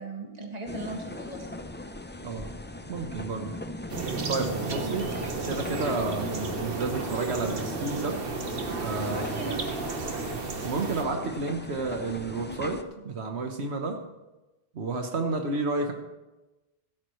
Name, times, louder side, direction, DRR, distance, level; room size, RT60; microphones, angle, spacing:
voice 1, 0.0-1.5 4.6-5.0 9.1-9.6, right 2 dB, 40° right, 1 dB, 1.9 m, -38 dB
sound 1, 0.7-12.8, left 2 dB, 15° left, 0.4 m, -39 dB
voice 2, 2.9-3.5 4.3-5.1 5.4-8.2 8.8-9.3 10.6-14.0 14.7-15.9, right 3 dB, 85° right, 4 dB, 1.4 m, -31 dB
sound 2, 3.9-11.0, right 4 dB, 60° right, 1.3 m, -33 dB
15.0 x 12.5 x 3.1 m, 1.1 s
omnidirectional pair, 1.1 m